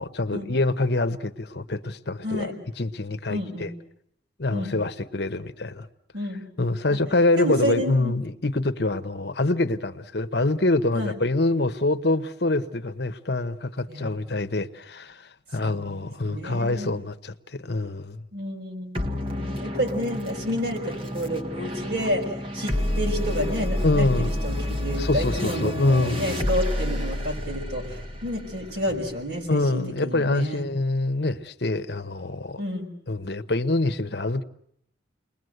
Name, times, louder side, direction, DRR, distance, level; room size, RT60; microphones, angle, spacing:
voice 1, 0.0-3.7 4.4-5.9 6.6-18.2 23.8-24.3 25.0-26.3 29.5-32.6 33.1-34.4, left 2 dB, 60° left, 1.1 m, -25 dB
voice 2, 2.2-2.5 3.3-3.7 4.5-4.7 6.1-6.4 6.9-7.0 7.4-8.1 10.9-11.1 13.9-14.1 15.6-16.9 18.3-19.1 19.4-30.7 32.6-32.9, equal, 60° right, 6.0 m, -30 dB
sound 1, 18.9-29.7, left 1 dB, 30° right, 1.8 m, -29 dB
30.0 x 21.0 x 8.0 m
head